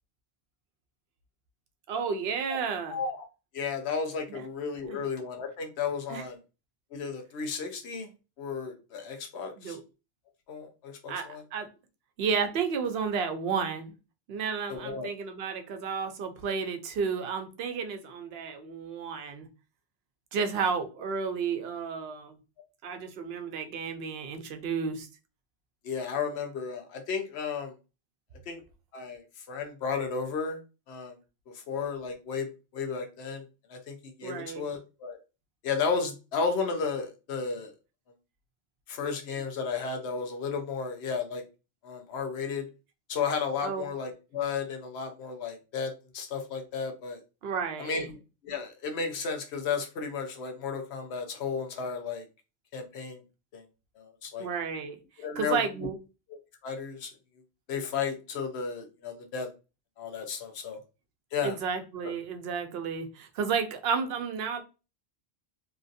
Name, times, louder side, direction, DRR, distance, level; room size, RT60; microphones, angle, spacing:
voice 1, 1.9-3.0 4.3-4.4 4.9-5.0 6.1-6.2 9.6-9.8 11.1-11.7 12.2-13.9 14.3-19.5 20.3-22.4 22.8-25.1 34.2-34.6 43.6-43.8 47.4-48.1 54.4-55.0 55.4-56.0 61.4-64.6, right 5 dB, 75° right, 0.8 m, -32 dB
voice 2, 2.9-3.2 3.5-6.4 6.9-8.1 8.4-9.8 10.5-11.4 14.7-15.1 20.6-20.7 25.8-27.7 28.5-28.6 28.9-30.6 30.9-31.1 31.5-32.5 32.7-35.2 35.6-37.7 38.9-41.4 41.8-42.7 43.1-47.2 47.8-48.2 48.4-52.3 52.7-53.2 53.5-53.6 54.0-54.5 55.2-55.9 56.3-57.1 57.7-59.5 60.0-60.8 61.3-61.6 62.0-62.1, left 5 dB, 85° left, 1.0 m, -33 dB
3.0 x 2.5 x 2.6 m
omnidirectional pair, 1.1 m